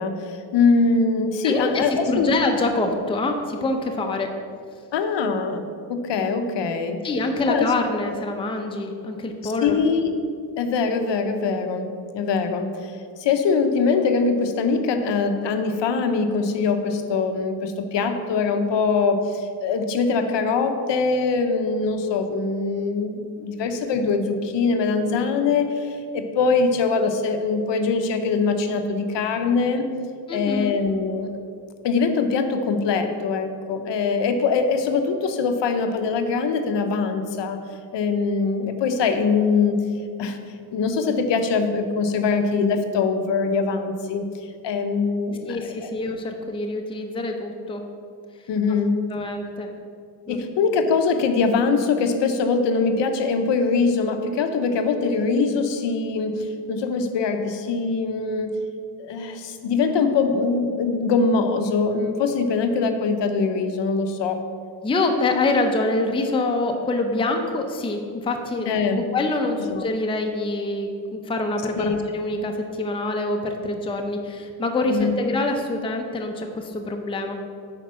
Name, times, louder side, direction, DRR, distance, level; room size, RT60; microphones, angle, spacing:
voice 1, 0.0-2.3 4.9-7.0 7.5-7.7 9.4-10.1 10.6-29.9 30.3-31.3 31.8-37.6 37.9-39.8 40.2-40.4 40.7-44.3 44.6-45.6 45.8-45.9 48.5-49.0 50.3-58.5 59.0-64.4 68.7-69.1 69.7-69.9 71.8-72.0 74.9-75.2, left 4 dB, 60° left, 7 dB, 0.9 m, -23 dB
voice 2, 1.4-4.3 7.0-9.8 30.3-30.7 45.5-47.8 49.1-49.7 50.3-50.4 64.8-77.4, left 2 dB, 10° left, 3 dB, 0.5 m, -25 dB
8.9 x 4.6 x 6.1 m, 2.3 s
cardioid pair, 145°, 48 cm